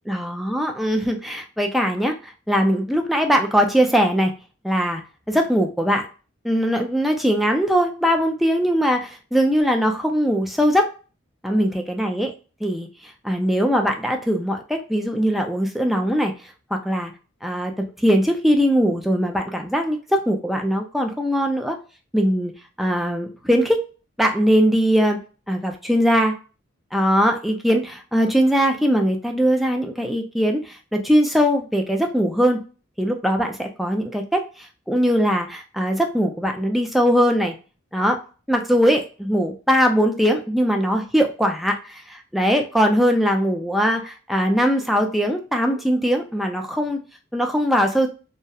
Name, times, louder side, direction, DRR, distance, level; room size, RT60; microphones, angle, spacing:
voice 1, 0.1-4.3 4.6-5.0 5.3-6.1 6.4-10.9 11.4-12.3 12.6-16.3 16.7-17.1 17.4-21.8 22.1-22.5 22.8-23.8 24.2-25.2 25.5-26.3 26.9-32.6 33.0-37.6 37.9-38.2 38.5-47.0 47.3-48.1, equal, ahead, 3 dB, 0.3 m, -21 dB
2.7 x 2.0 x 2.3 m, 0.35 s
head